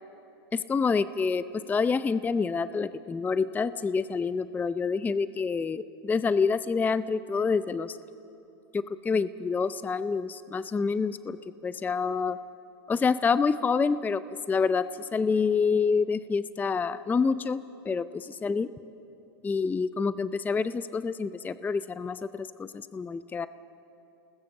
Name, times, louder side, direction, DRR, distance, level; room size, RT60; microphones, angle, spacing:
voice 1, 0.5-8.0 8.7-12.4 12.9-14.2 14.5-17.6 17.8-18.7 19.4-23.5, left 5 dB, 15° left, 14 dB, 0.5 m, -27 dB
29.0 x 20.0 x 6.7 m, 2.9 s
hypercardioid pair, 110°, 13 cm